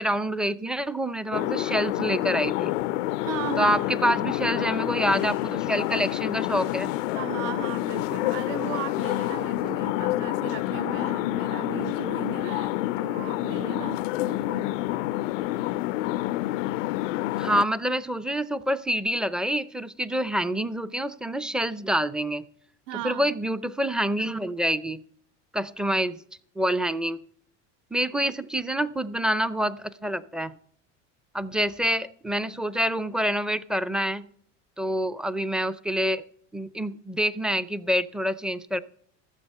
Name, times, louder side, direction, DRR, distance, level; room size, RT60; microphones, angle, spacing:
voice 1, 0.0-2.7 3.6-6.9 17.4-22.4 23.0-25.0 25.5-26.2 26.6-27.2 27.9-30.5 31.3-34.3 34.8-36.2 36.5-38.8, equal, ahead, 0.5 m, -27 dB
sound 1, 1.3-17.6, left 16 dB, 85° left, 0.5 m, -28 dB
voice 2, 3.2-3.8 7.1-14.0 14.3-14.7 22.9-23.4, right 13 dB, 60° right, 0.8 m, -36 dB
14.0 x 6.8 x 5.4 m
hypercardioid pair, 85°, 37 cm